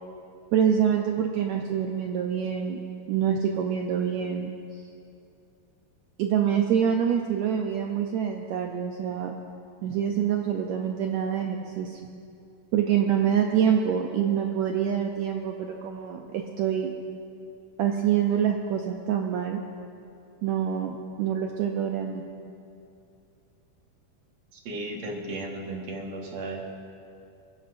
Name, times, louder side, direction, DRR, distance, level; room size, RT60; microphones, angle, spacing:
voice 1, 0.5-2.8 3.1-4.5 6.2-9.4 9.8-12.0 12.7-16.9 17.8-19.6 20.4-22.2, right 8 dB, 85° right, 2 dB, 1.6 m, -26 dB
voice 2, 24.5-26.6, right 2 dB, 55° right, 1 dB, 2.3 m, -35 dB
22.0 x 16.5 x 2.6 m, 2.6 s
omnidirectional pair, 4.1 m